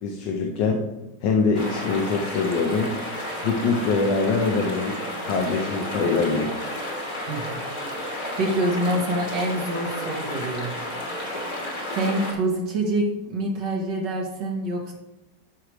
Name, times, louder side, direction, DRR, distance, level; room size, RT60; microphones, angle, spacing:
voice 1, 0.0-0.8 1.2-2.9 3.4-5.0 5.2-6.7, left 4 dB, 80° left, 1 dB, 1.5 m, -23 dB
sound 1, 1.5-12.3, left 1 dB, 25° left, 1.4 m, -32 dB
voice 2, 7.3-7.6 8.4-10.7 11.9-14.9, right 1 dB, 80° right, -1 dB, 1.9 m, -26 dB
12.5 x 4.9 x 3.1 m, 0.95 s
omnidirectional pair, 1.9 m